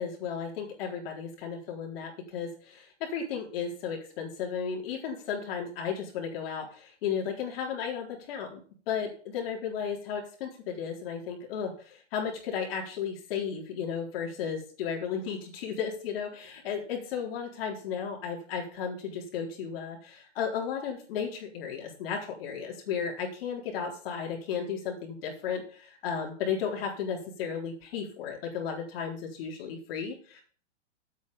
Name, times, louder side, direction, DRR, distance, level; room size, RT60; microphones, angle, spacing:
voice 1, 0.0-8.6 8.9-30.4, left 7 dB, 50° left, 0 dB, 4.1 m, -34 dB
8.5 x 8.5 x 5.2 m, 0.43 s
hypercardioid pair, 125°, 36 cm